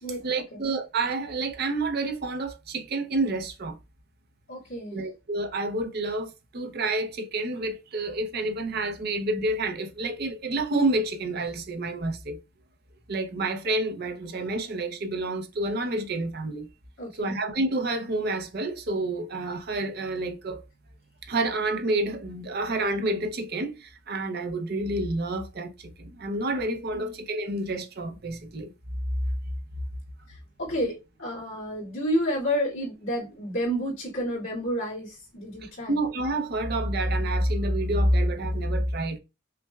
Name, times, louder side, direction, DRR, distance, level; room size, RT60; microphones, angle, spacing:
voice 1, 0.2-3.8 4.9-12.4 13.1-16.7 17.1-20.6 21.2-28.7 35.6-39.2, right 2 dB, 50° right, 0.6 m, -28 dB
voice 2, 4.5-5.0 17.0-17.4 26.9-27.1 30.3-36.0, equal, 70° left, 2.0 m, -30 dB
5.5 x 2.2 x 2.2 m
head